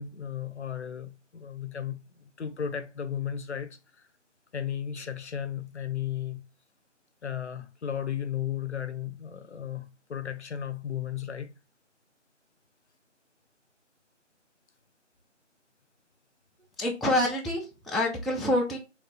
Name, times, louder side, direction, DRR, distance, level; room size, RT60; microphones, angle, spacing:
voice 1, 0.0-3.8 4.5-6.4 7.2-11.5, left 9 dB, 65° left, 0.5 m, -35 dB
voice 2, 16.8-18.8, left 1 dB, ahead, 0.3 m, -27 dB
3.2 x 2.0 x 3.0 m
figure-of-eight pair, 160°, 38 cm